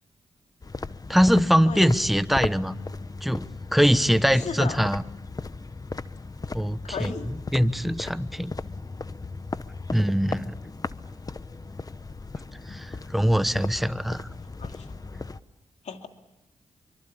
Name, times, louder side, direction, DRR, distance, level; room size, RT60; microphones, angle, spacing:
sound 1, 0.6-15.4, left 3 dB, 30° left, 1.0 m, -37 dB
voice 1, 1.1-2.8 3.2-5.0 6.5-7.1 7.5-8.5 9.9-10.6 12.7-14.3, equal, ahead, 12 dB, 1.2 m, -22 dB
voice 2, 4.3-4.8 6.8-7.3 14.6-14.9 15.8-16.1, left 6 dB, 80° left, 5 dB, 2.5 m, -35 dB
27.0 x 24.5 x 8.7 m, 0.94 s
cardioid pair, 75°, 12 cm